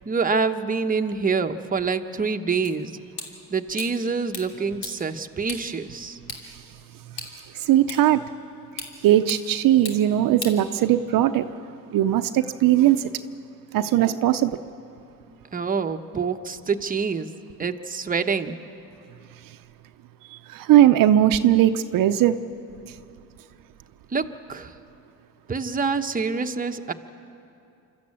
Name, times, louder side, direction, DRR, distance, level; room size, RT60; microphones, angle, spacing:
voice 1, 0.1-2.9 3.5-6.2 15.5-17.3 17.6-18.6 24.1-24.7 25.5-26.9, right 5 dB, 25° right, 6 dB, 1.0 m, -26 dB
sound 1, 2.7-11.3, left 4 dB, 75° left, 3.0 m, -41 dB
voice 2, 7.7-8.2 9.0-11.5 11.9-13.0 13.7-14.5 20.5-22.3, right 12 dB, 70° right, 9 dB, 0.7 m, -19 dB
25.5 x 13.5 x 8.7 m, 2.7 s
cardioid pair, 85°, 34 cm